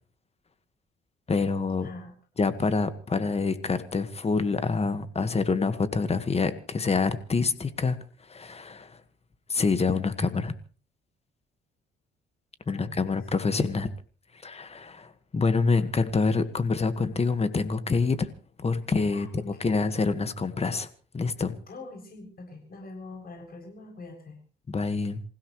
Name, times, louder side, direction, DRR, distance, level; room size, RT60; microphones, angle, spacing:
voice 1, 1.3-1.9 2.4-8.0 8.3-9.0 9.5-10.5 12.7-13.9 14.4-18.3 18.6-20.9 21.1-21.5 24.7-25.2, left 4 dB, 30° left, 12 dB, 1.7 m, -26 dB
voice 2, 1.8-2.1 2.6-2.7 12.7-13.1 19.1-19.6 21.7-24.4, left 3 dB, 50° left, 2 dB, 7.4 m, -43 dB
27.5 x 16.0 x 3.2 m, 0.37 s
cardioid pair, 90°, 20 cm